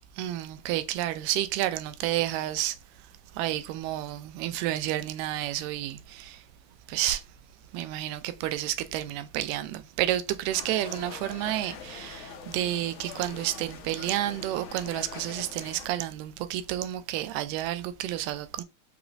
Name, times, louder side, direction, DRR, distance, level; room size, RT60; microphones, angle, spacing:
voice 1, 0.2-2.8 3.3-6.4 6.9-7.2 7.7-18.6, right 13 dB, 90° right, 2.2 m, -30 dB
sound 1, 10.5-15.9, left 6 dB, 75° left, 2.1 m, -43 dB
5.9 x 2.9 x 2.6 m
omnidirectional pair, 3.7 m